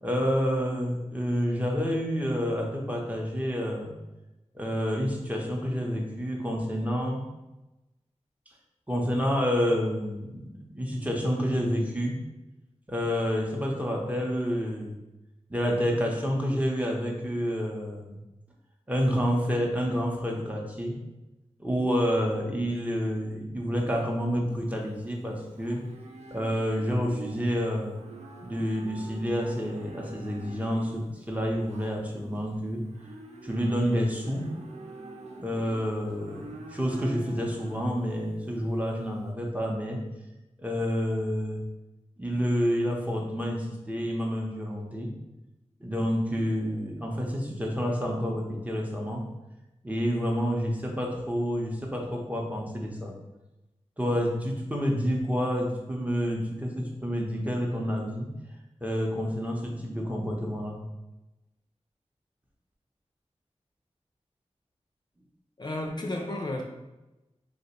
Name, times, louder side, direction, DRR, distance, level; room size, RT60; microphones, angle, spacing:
voice 1, 0.0-3.9 4.5-7.3 8.9-12.2 12.9-15.0 15.5-18.2 18.9-21.0 21.6-25.9 26.3-28.0 28.4-32.8 33.4-34.5 35.4-40.0 40.6-41.6 42.2-45.1 45.8-49.3 49.8-53.1 54.0-58.3 58.8-60.8, equal, 10° right, -1 dB, 0.6 m, -29 dB
Livestock farm animals working animals, 24.5-39.3, right 3 dB, 70° right, 0.4 m, -46 dB
voice 2, 65.6-66.6, left 1 dB, 40° left, 1 dB, 0.4 m, -32 dB
2.8 x 2.1 x 4.1 m, 1.0 s
wide cardioid pair, 85°, 12 cm